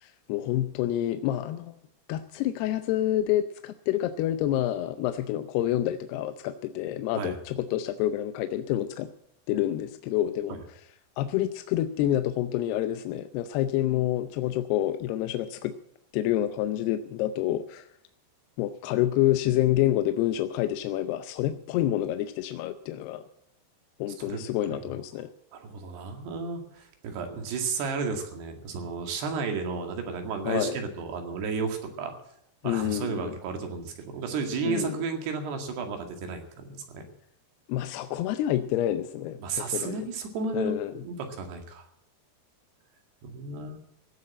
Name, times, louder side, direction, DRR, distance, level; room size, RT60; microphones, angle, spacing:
voice 1, 0.0-1.8 2.1-9.1 9.5-10.6 11.2-15.7 16.1-17.9 18.6-23.2 24.0-25.3 30.5-30.8 32.6-33.4 34.7-35.0 37.7-39.4 39.7-40.1 40.5-40.9, left 13 dB, 80° left, 9 dB, 2.6 m, -28 dB
voice 2, 25.5-32.1 32.6-37.1 39.4-41.9 43.2-43.8, right 4 dB, 75° right, 5 dB, 4.2 m, -33 dB
17.0 x 8.0 x 8.8 m, 0.72 s
omnidirectional pair, 4.9 m